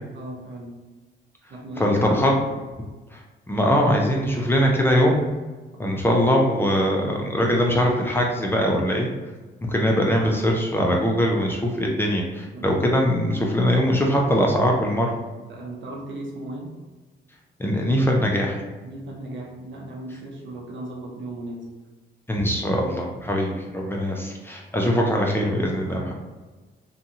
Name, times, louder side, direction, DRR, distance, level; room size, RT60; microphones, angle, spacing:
voice 1, 0.1-0.8 1.5-2.4 5.7-5.8 12.5-12.7 15.5-16.8 18.8-21.7 24.7-24.9, right 1 dB, 70° right, -2 dB, 0.8 m, -36 dB
voice 2, 1.8-2.3 3.1-3.2 3.5-5.2 5.8-9.1 9.6-15.1 17.6-18.6 22.3-26.1, equal, 10° left, -1 dB, 0.5 m, -21 dB
2.7 x 2.4 x 2.7 m, 1.2 s
cardioid pair, 90°, 20 cm